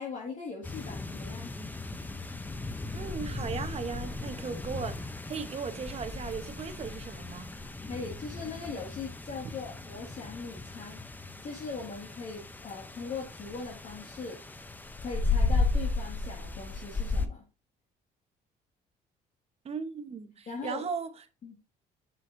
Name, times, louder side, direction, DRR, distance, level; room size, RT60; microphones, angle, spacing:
voice 1, 0.0-1.5 7.9-11.0 11.4-14.4 15.0-17.4 20.5-20.9 21.4-21.6, left 4 dB, 45° left, 2.0 m, -40 dB
sound 1, 0.6-17.3, left 3 dB, 10° left, 0.6 m, -35 dB
voice 2, 2.9-7.5 19.6-21.1, right 6 dB, 40° right, 1.1 m, -37 dB
7.3 x 6.3 x 2.7 m
cardioid pair, 110°, 17 cm